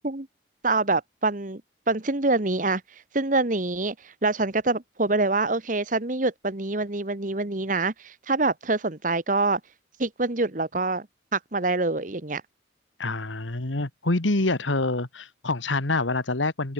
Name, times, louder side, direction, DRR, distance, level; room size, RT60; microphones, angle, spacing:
voice 1, 0.6-1.6 1.9-2.8 3.1-3.9 4.2-9.6 10.0-11.1 11.3-12.4, right 3 dB, 45° right, 1.3 m, -25 dB
voice 2, 13.0-16.7, left 2 dB, 90° left, 2.0 m, -26 dB
open air
head